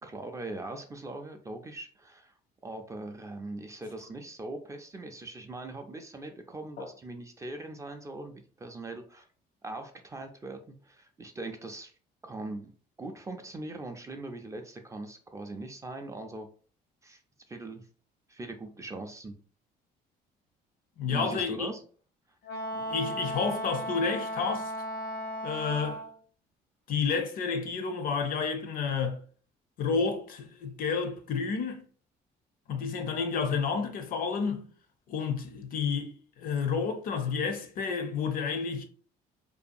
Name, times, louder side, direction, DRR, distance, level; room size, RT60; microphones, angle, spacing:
voice 1, 0.0-2.3 2.6-9.3 9.6-11.9 12.2-12.7 13.0-16.5 17.0-17.2 17.5-17.9 18.3-19.4 21.1-21.8, right 2 dB, 20° right, 0.3 m, -41 dB
voice 2, 21.0-21.7 22.7-24.7 25.4-26.0 26.9-29.2 29.8-31.8 32.7-34.7 35.1-38.8, left 5 dB, 55° left, 0.5 m, -30 dB
Wind instrument woodwind instrument, 22.4-26.1, equal, 90° left, 1.1 m, -35 dB
2.6 x 2.2 x 2.5 m
cardioid pair, 110°, 17 cm